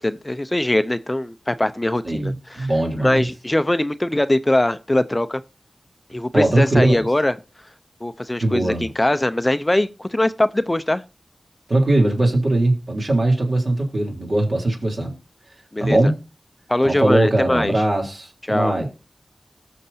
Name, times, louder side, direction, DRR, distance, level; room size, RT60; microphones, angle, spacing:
voice 1, 0.0-2.7 3.0-5.4 6.1-7.3 8.0-11.0 15.7-16.1 16.7-17.7 18.5-18.7, left 1 dB, 25° left, 0.6 m, -21 dB
voice 2, 2.0-3.3 6.3-7.0 8.4-8.9 11.7-15.1 15.8-16.2 16.8-18.9, right 1 dB, 65° right, 3.5 m, -20 dB
19.0 x 6.5 x 2.8 m
wide cardioid pair, 50°, 0 cm